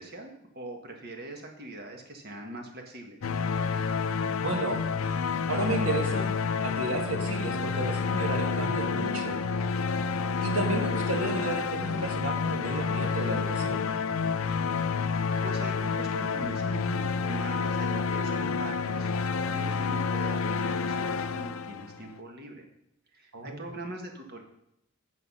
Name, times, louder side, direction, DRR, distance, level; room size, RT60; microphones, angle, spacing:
voice 1, 0.0-3.2 15.4-19.1 19.3-22.7 23.1-24.4, right 1 dB, 45° right, 3 dB, 1.6 m, -42 dB
sound 1, 3.2-22.1, left 5 dB, 75° left, 0.5 m, -29 dB
voice 2, 4.4-4.8 5.5-6.3 6.6-9.4 10.4-13.9 23.3-23.7, right 2 dB, 85° right, 3 dB, 1.9 m, -32 dB
8.5 x 6.7 x 5.6 m, 0.80 s
head